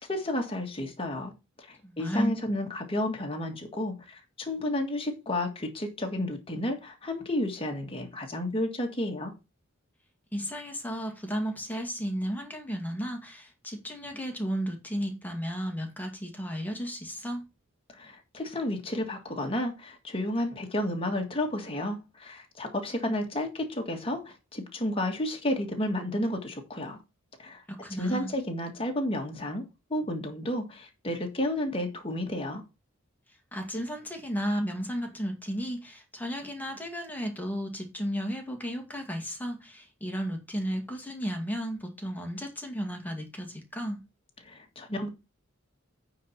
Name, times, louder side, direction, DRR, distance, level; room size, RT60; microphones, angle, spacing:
voice 1, 0.1-1.3 1.6-9.3 17.9-27.0 27.4-27.6 27.9-29.6 29.9-32.6 44.4-45.1, left 1 dB, 25° left, 1.8 m, -31 dB
voice 2, 1.8-2.3 10.3-17.4 27.7-28.3 33.5-44.0, equal, 10° left, 2.1 m, -34 dB
9.1 x 4.1 x 5.9 m
head